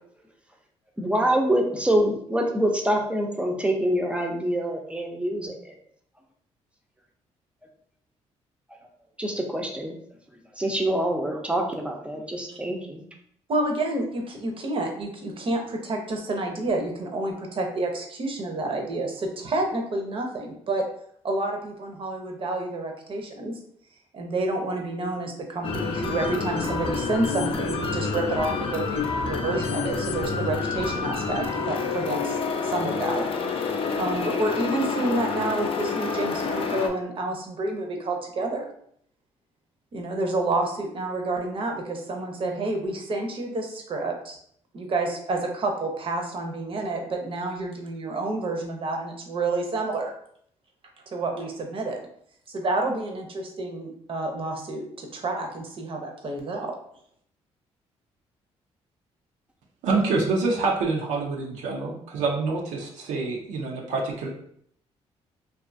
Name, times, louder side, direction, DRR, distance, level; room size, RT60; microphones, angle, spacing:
voice 1, 1.0-5.8 9.2-10.0 10.5-13.0 60.2-60.3, right 1 dB, 10° right, 1 dB, 0.5 m, -25 dB
voice 2, 13.5-20.9 21.2-23.6 24.1-32.4 32.6-33.2 33.7-38.6 39.9-44.4 44.7-50.1 51.1-52.0 52.5-56.7, right 2 dB, 50° right, 3 dB, 0.6 m, -29 dB
sound 1, 25.6-36.9, left 4 dB, 50° left, 0.4 m, -28 dB
voice 3, 59.8-64.3, right 3 dB, 90° right, 0 dB, 0.5 m, -26 dB
2.6 x 2.3 x 2.5 m, 0.65 s
cardioid pair, 75°, 12 cm